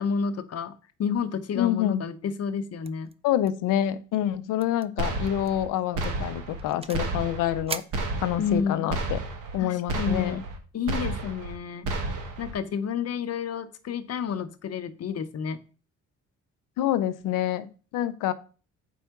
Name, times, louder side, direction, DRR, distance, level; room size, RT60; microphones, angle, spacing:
voice 1, 0.0-3.1 8.4-8.9 9.6-10.4 10.7-11.9 12.4-15.6, left 6 dB, 55° left, 11 dB, 0.7 m, -30 dB
voice 2, 1.6-2.0 3.2-7.8 8.2-9.2 9.5-10.4 16.8-18.3, left 12 dB, 85° left, 13 dB, 0.6 m, -27 dB
sound 1, 2.8-3.1 3.4-4.0 4.6-4.9 5.3-5.5 6.0-7.1 7.7-8.7, right 5 dB, 20° right, 0.4 m, -40 dB
sound 2, 5.0-5.7 6.0-6.7 6.9-7.6 7.9-8.6 8.9-9.6 9.9-10.6 10.9-11.6 11.9-12.5, right 2 dB, 75° right, 1.2 m, -31 dB
4.6 x 4.2 x 5.7 m, 0.37 s
cardioid pair, 70°, 31 cm